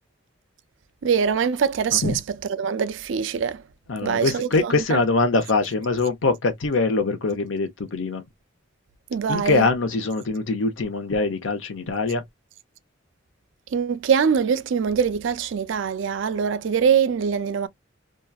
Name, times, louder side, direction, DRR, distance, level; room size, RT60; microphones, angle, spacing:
voice 1, 1.0-3.6 4.0-5.0 9.1-9.7 13.7-17.7, right 7 dB, 75° right, 0.4 m, -23 dB
voice 2, 3.9-8.2 9.3-12.2, left 3 dB, 85° left, 0.8 m, -23 dB
2.9 x 2.3 x 2.3 m
head